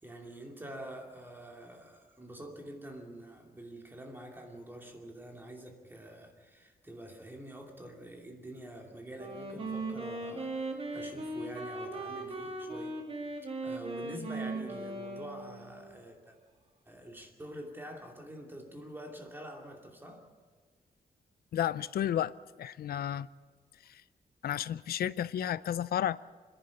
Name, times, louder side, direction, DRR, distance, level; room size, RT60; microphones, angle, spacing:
voice 1, 0.0-13.0 13.4-16.4 16.8-20.3, right 1 dB, 15° right, 2.6 m, -46 dB
Wind instrument woodwind instrument, 9.1-15.9, right 2 dB, 40° right, 2.8 m, -38 dB
voice 2, 21.5-23.3 23.8-24.0 24.4-26.2, left 10 dB, 80° left, 0.5 m, -32 dB
25.0 x 11.0 x 9.7 m
wide cardioid pair, 180°, 16 cm